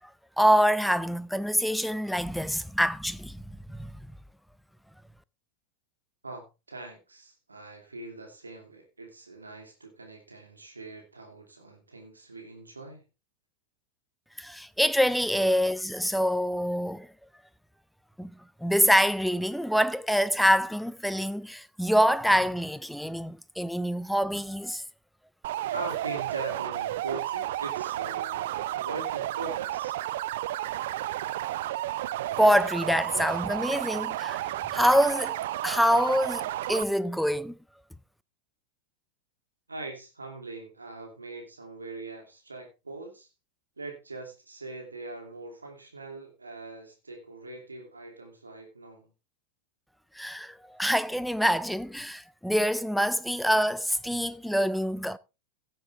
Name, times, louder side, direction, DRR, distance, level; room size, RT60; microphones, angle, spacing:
voice 1, 0.4-3.9 14.4-17.1 18.2-18.3 18.6-24.8 32.4-35.4 35.6-37.5 50.2-55.2, equal, ahead, 0.6 m, -25 dB
voice 2, 6.2-13.0 25.7-30.0 39.7-43.3 43.8-49.0, right 3 dB, 80° right, 2.7 m, -42 dB
sound 1, 25.4-36.8, right 14 dB, 55° right, 0.5 m, -32 dB
16.5 x 7.6 x 3.4 m
figure-of-eight pair, 90°, 0 cm